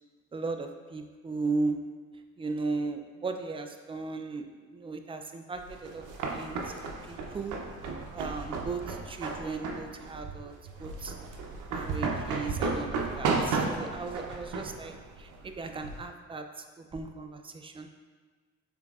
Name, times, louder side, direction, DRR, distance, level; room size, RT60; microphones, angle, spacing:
voice 1, 0.3-1.8 2.4-6.0 6.3-7.6 8.1-11.1 11.7-17.9, right 3 dB, 20° right, 5 dB, 0.3 m, -36 dB
sound 1, 5.6-16.0, right 4 dB, 85° right, 0.7 m, -34 dB
5.9 x 3.7 x 2.3 m, 1.4 s
cardioid pair, 90°, 30 cm